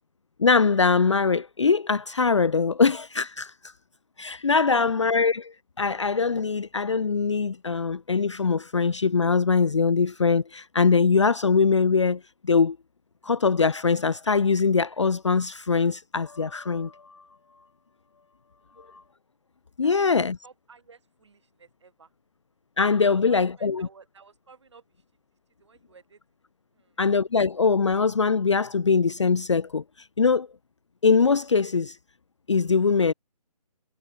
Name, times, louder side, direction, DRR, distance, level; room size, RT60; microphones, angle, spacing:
voice 1, 0.4-3.5 4.2-12.8 13.2-17.2 18.9-19.0 19.8-20.4 22.8-23.9 27.0-29.8 30.2-30.5 31.0-31.9 32.5-33.1, left 5 dB, 50° left, 0.4 m, -22 dB
voice 2, 20.4-22.1 23.0-25.0 25.6-26.2 26.7-27.0, right 5 dB, 45° right, 5.5 m, -54 dB
figure-of-eight pair, 150°, 20 cm